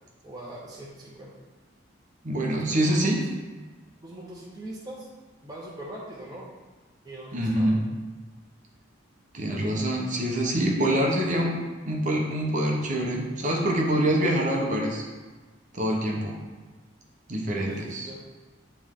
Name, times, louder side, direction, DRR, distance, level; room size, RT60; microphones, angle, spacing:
voice 1, 0.2-1.3 2.5-3.2 4.0-5.1 5.4-6.5 7.0-7.7 17.7-18.2, right 1 dB, 20° right, -5 dB, 0.8 m, -41 dB
voice 2, 2.2-3.2 7.3-7.8 9.3-11.6 11.9-15.1 15.7-16.4 17.3-18.1, right 1 dB, 40° right, -1 dB, 0.9 m, -25 dB
9.5 x 3.2 x 3.6 m, 1.3 s
head